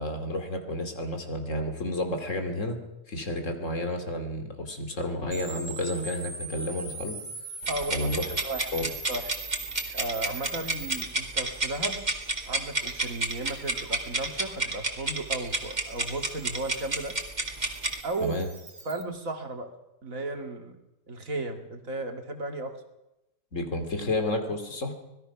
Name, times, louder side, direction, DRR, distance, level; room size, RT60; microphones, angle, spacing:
voice 1, 0.0-2.8 3.1-7.2 7.9-8.3 8.7-8.9 18.2-18.5 23.5-24.9, left 1 dB, 70° left, 5 dB, 2.9 m, -31 dB
sound 1, 5.3-19.0, right 3 dB, 55° right, 2.3 m, -42 dB
sound 2, 7.6-18.0, right 2 dB, 35° right, 2.4 m, -30 dB
voice 2, 7.7-8.7 9.1-9.3 9.9-12.0 12.5-17.1 18.0-18.4 18.8-19.7 20.0-20.8 21.1-22.7, right 2 dB, 85° right, 5 dB, 2.6 m, -35 dB
25.5 x 19.5 x 5.9 m, 0.94 s
omnidirectional pair, 1.4 m